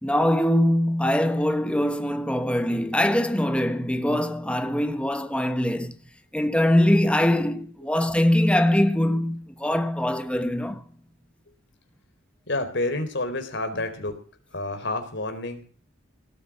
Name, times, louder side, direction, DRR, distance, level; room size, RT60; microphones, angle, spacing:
voice 1, 0.0-5.9 6.3-10.8, left 1 dB, 5° left, 1.3 m, -22 dB
voice 2, 12.5-14.2 14.5-15.6, left 2 dB, 60° left, 4.1 m, -29 dB
18.5 x 8.7 x 7.4 m
head